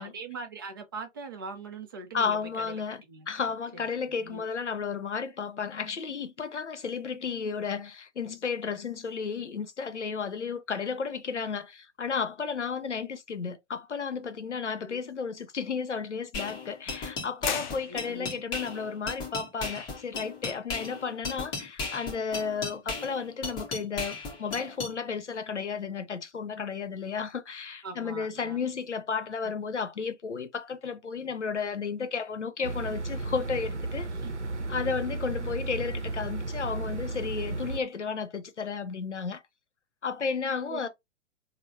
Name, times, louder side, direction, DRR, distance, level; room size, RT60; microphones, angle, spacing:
voice 1, 0.0-2.8 3.1-3.3 4.2-4.5 14.8-15.0 17.9-18.4 27.8-28.6 29.4-29.5 34.1-34.3 34.7-35.0 40.7-40.9, right 4 dB, 20° right, 0.3 m, -41 dB
voice 2, 2.1-34.1 34.7-39.4 40.0-40.9, left 5 dB, 80° left, 0.7 m, -33 dB
sound 1, 16.3-24.9, left 3 dB, 15° left, 0.7 m, -36 dB
sound 2, 17.4-18.5, left 8 dB, 45° left, 0.4 m, -35 dB
sound 3, 32.6-37.8, right 2 dB, 85° right, 0.7 m, -34 dB
3.7 x 2.0 x 2.6 m
figure-of-eight pair, 115°, 34 cm